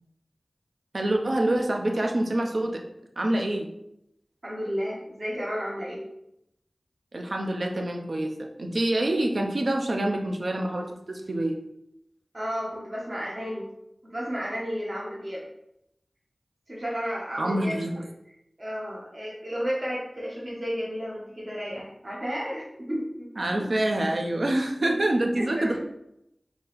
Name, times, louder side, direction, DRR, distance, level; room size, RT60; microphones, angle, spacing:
voice 1, 0.9-2.9 3.2-3.7 7.1-11.6 17.4-18.0 23.4-25.9, right 1 dB, 70° right, 3 dB, 0.6 m, -26 dB
voice 2, 4.4-6.0 12.3-13.7 14.0-15.4 16.7-17.8 18.6-23.3 24.8-24.9 25.4-25.7, equal, 45° right, -5 dB, 1.2 m, -32 dB
4.0 x 2.9 x 4.0 m, 0.81 s
wide cardioid pair, 45°, 0 cm